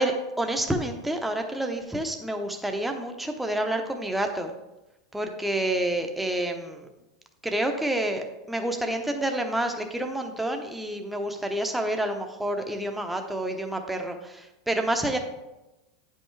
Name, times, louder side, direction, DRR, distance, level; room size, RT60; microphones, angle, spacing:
voice 1, 0.0-4.5 5.1-6.9 7.4-15.2, right 1 dB, 5° right, 4 dB, 0.8 m, -28 dB
8.5 x 5.5 x 3.3 m, 1.0 s
hypercardioid pair, 110°, 2 cm